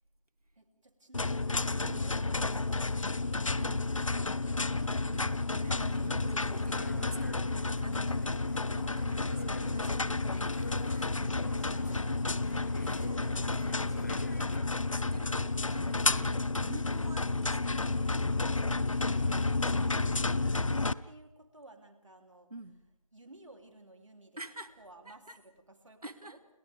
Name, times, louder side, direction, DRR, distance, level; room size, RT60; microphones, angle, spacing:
voice 1, 0.6-4.8 7.3-7.5 11.0-12.0 18.9-20.2 20.5-26.5, right 1 dB, 55° right, 4 dB, 3.5 m, -56 dB
sound 1, 1.1-20.9, left 3 dB, 60° left, 0.8 m, -31 dB
voice 2, 3.5-3.9 4.6-11.3 11.9-12.4 12.8-17.9 19.6-20.1 22.5-22.8 24.4-24.7 25.1-25.4 26.0-26.4, right 2 dB, 85° right, 9 dB, 2.4 m, -49 dB
sound 2, 6.5-14.6, left 1 dB, 30° left, 2.0 m, -45 dB
30.0 x 28.5 x 3.6 m, 0.85 s
figure-of-eight pair, 175°, 19 cm